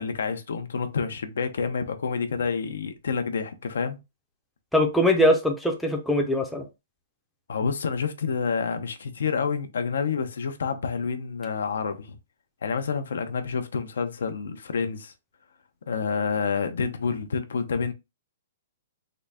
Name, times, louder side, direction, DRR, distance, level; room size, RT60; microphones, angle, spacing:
voice 1, 0.0-4.0 7.5-12.2 12.6-15.1 15.9-17.9, left 5 dB, 80° left, 0.6 m, -28 dB
voice 2, 4.7-6.6, left 1 dB, ahead, 0.5 m, -22 dB
3.8 x 2.2 x 3.4 m
hypercardioid pair, 160°, 0 cm